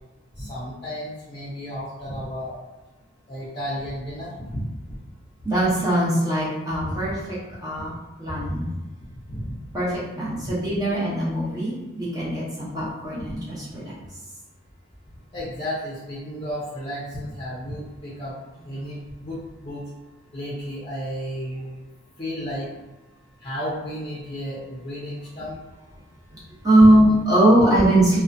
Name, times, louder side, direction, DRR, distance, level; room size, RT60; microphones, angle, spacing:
voice 1, 0.3-2.6 3.3-5.0 6.9-7.0 7.7-7.8 9.3-9.5 10.4-10.5 13.2-13.3 15.3-18.3 18.6-19.8 20.3-21.9 22.2-22.7 23.4-25.6 26.8-26.9, equal, 30° left, -8 dB, 0.5 m, -33 dB
voice 2, 5.4-7.1 7.6-7.9 8.2-8.7 9.7-9.9 10.2-13.9 26.6-28.2, right 1 dB, 20° right, -8 dB, 0.6 m, -20 dB
2.4 x 2.1 x 2.5 m, 1.1 s
head